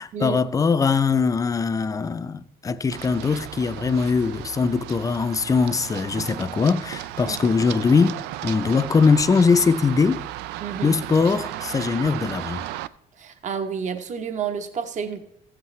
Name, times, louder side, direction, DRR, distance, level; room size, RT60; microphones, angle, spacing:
voice 1, 0.0-10.3 10.8-12.6, left 5 dB, 20° left, 0.5 m, -21 dB
Run, 2.9-12.9, right 14 dB, 90° right, 0.4 m, -35 dB
voice 2, 10.6-11.0 13.2-15.2, right 6 dB, 45° right, 0.9 m, -30 dB
14.5 x 7.9 x 3.2 m
cardioid pair, 110°, 17 cm